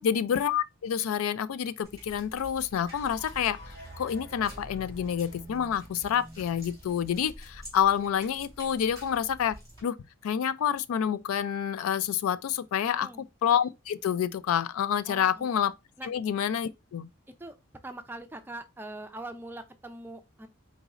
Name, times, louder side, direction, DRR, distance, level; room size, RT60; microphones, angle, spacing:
voice 1, 0.0-3.6 4.0-9.6 9.8-10.0 10.2-13.1 13.4-15.7 16.0-17.1, left 8 dB, 90° left, 0.3 m, -28 dB
sound 1, 1.8-9.8, equal, 15° left, 2.3 m, -50 dB
sound 2, 2.8-9.2, equal, 50° left, 2.3 m, -48 dB
voice 2, 12.9-13.3 15.1-15.5 16.0-16.1 17.3-17.6 17.8-20.5, right 2 dB, 10° right, 0.4 m, -42 dB
4.0 x 3.9 x 2.4 m
head